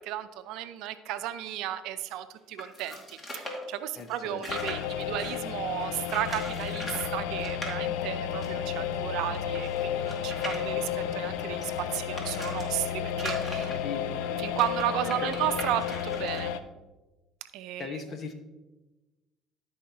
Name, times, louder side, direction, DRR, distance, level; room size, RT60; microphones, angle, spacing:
voice 1, 0.0-13.7 14.4-16.5 17.5-17.9, right 12 dB, 70° right, 11 dB, 0.6 m, -34 dB
sound 1, 2.6-5.5 6.1-7.1 7.4-7.7 8.4-8.5 8.7-8.8 9.3-12.7 13.1-16.4, left 1 dB, 30° left, 2.3 m, -40 dB
voice 2, 4.0-4.4 13.7-14.0 17.8-18.3, left 5 dB, 50° left, 7 dB, 1.2 m, -38 dB
sound 2, 4.5-16.6, left 9 dB, 80° left, 0.4 m, -32 dB
sound 3, 5.0-12.6, equal, 15° left, 0.8 m, -51 dB
13.0 x 5.6 x 2.8 m, 1.1 s
hypercardioid pair, 70°, 0 cm